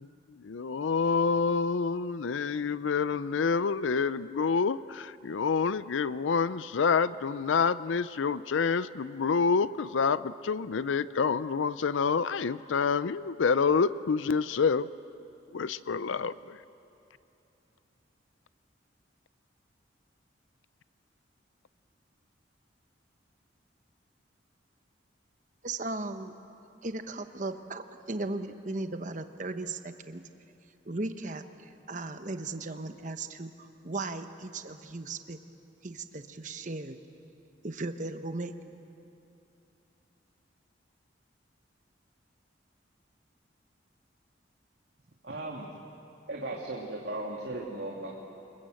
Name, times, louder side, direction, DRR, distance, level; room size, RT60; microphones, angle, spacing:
voice 1, 0.0-14.9 15.5-16.6, left 5 dB, 85° left, 16 dB, 0.5 m, -28 dB
voice 2, 25.6-26.3 26.8-30.2 30.8-35.4 35.8-37.0 37.6-38.5, right 2 dB, 40° right, 8 dB, 1.1 m, -37 dB
voice 3, 45.2-45.8 46.3-48.2, right 2 dB, 65° right, -2 dB, 2.3 m, -37 dB
26.5 x 22.0 x 7.6 m, 2.8 s
head